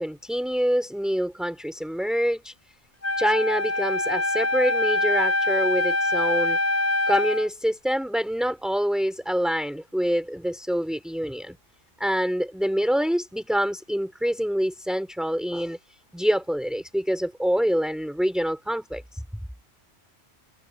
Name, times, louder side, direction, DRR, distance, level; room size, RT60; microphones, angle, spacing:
voice 1, 0.0-2.5 3.2-6.6 7.1-11.6 12.0-15.8 16.1-19.2, equal, ahead, 4.7 m, -26 dB
Wind instrument woodwind instrument, 3.0-7.5, left 2 dB, 35° left, 6.9 m, -24 dB
omnidirectional pair, 1.2 m